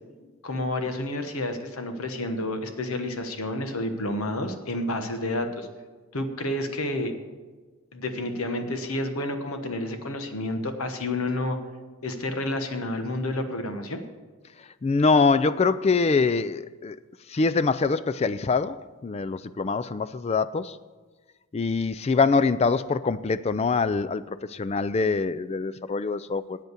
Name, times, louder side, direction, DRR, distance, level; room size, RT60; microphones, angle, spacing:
voice 1, 0.4-5.7 6.1-7.1 7.9-11.6 12.0-14.0, left 1 dB, 70° left, 7 dB, 1.2 m, -30 dB
voice 2, 14.8-17.0 17.3-20.8 21.5-24.2 24.5-26.6, left 4 dB, 30° left, 14 dB, 0.3 m, -24 dB
8.9 x 8.1 x 8.1 m, 1.4 s
head